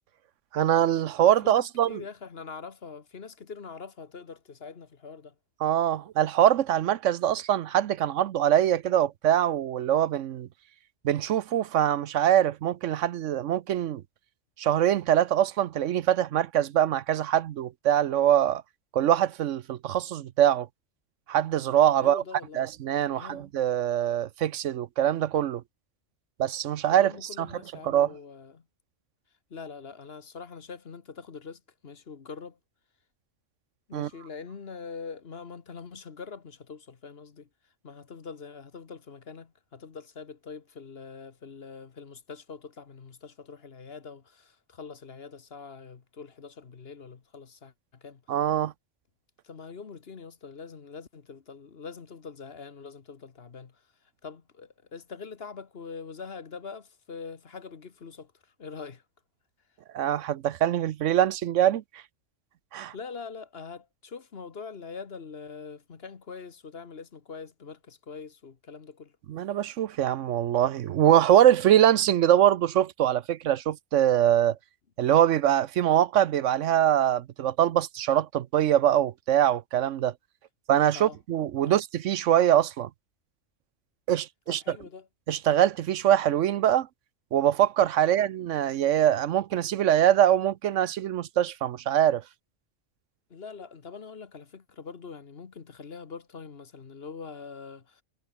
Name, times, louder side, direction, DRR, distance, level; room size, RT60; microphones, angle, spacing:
voice 1, 0.5-2.0 5.6-10.5 11.0-14.0 14.6-18.6 18.9-20.7 21.3-22.2 22.5-25.6 26.4-27.1 27.4-27.5 27.8-28.1 33.9-34.1 48.3-48.7 59.9-61.8 62.7-62.9 69.3-74.6 75.0-80.1 80.7-82.9 84.1-84.6 85.3-86.9 87.3-92.2, right 11 dB, 75° right, 1.0 m, -23 dB
voice 2, 1.4-5.3 22.0-22.7 23.1-23.5 26.9-28.6 29.5-32.6 33.9-37.5 37.8-48.4 49.4-59.0 62.9-69.1 80.9-81.2 81.6-81.8 84.5-85.1 88.0-88.2 93.3-98.0, left 5 dB, 50° left, 1.5 m, -43 dB
omnidirectional pair, 1.3 m